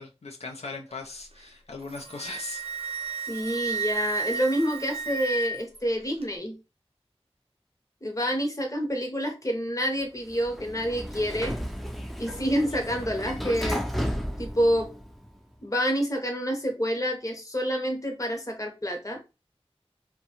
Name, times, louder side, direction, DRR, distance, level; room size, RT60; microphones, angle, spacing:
voice 1, 0.0-2.6, left 3 dB, 85° left, 0.4 m, -39 dB
Wind instrument woodwind instrument, 1.8-5.8, right 4 dB, 70° right, 0.5 m, -32 dB
voice 2, 3.3-6.6 8.0-11.6 12.2-13.8 14.4-14.9 15.6-19.2, equal, 30° left, 0.7 m, -28 dB
Sliding door, 10.2-15.4, equal, ahead, 0.4 m, -34 dB
2.5 x 2.2 x 2.8 m
wide cardioid pair, 40°, 11 cm